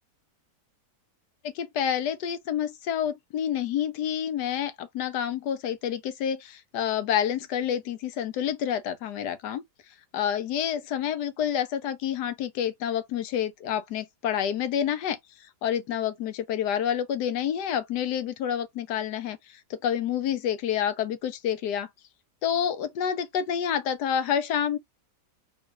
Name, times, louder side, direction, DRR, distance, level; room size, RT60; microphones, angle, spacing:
voice 1, 1.4-9.6 10.1-15.2 15.6-21.9 22.4-24.8, left 9 dB, 75° left, 1.2 m, -28 dB
3.8 x 2.4 x 4.6 m
omnidirectional pair, 1.8 m